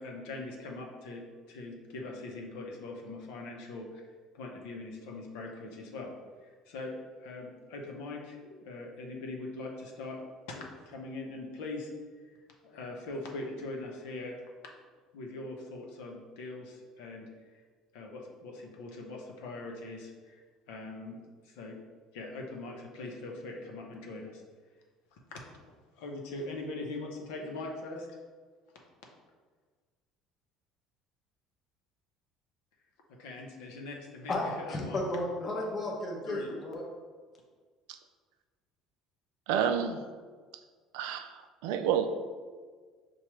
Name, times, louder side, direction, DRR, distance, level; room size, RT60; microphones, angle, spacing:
voice 1, 0.0-6.1 6.4-6.9 7.2-10.2 10.5-11.9 12.2-12.3 12.6-14.4 15.1-17.6 17.9-21.8 22.1-24.4 25.1-25.4 26.0-28.1 33.1-35.0 36.2-36.5, left 2 dB, 85° left, 0 dB, 0.7 m, -42 dB
voice 2, 34.3-36.8, left 1 dB, 30° left, -1 dB, 0.7 m, -33 dB
voice 3, 39.5-40.1 40.9-42.1, right 8 dB, 85° right, 8 dB, 0.3 m, -30 dB
5.8 x 2.3 x 3.1 m, 1.5 s
cardioid pair, 115°, 0 cm